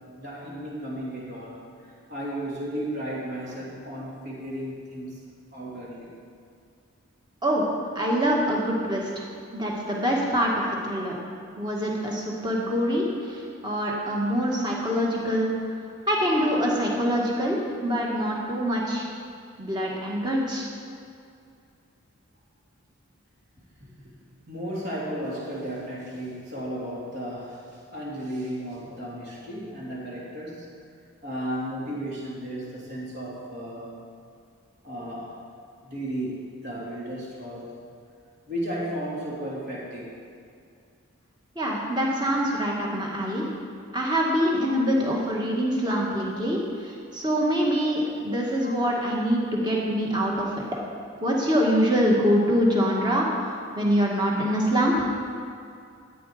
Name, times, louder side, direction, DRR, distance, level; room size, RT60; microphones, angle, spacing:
voice 1, 0.2-1.6 2.1-5.2 5.5-6.1 23.8-30.7 31.2-33.9 34.8-35.4 35.8-37.7 38.5-40.2 48.6-49.0, right 1 dB, 50° right, -5 dB, 3.3 m, -34 dB
voice 2, 8.0-9.3 9.5-11.1 11.6-15.5 16.1-19.1 19.6-20.7 41.6-43.4 43.9-50.6 51.2-55.1, equal, 20° right, -3 dB, 1.9 m, -25 dB
13.5 x 9.0 x 5.1 m, 2.4 s
head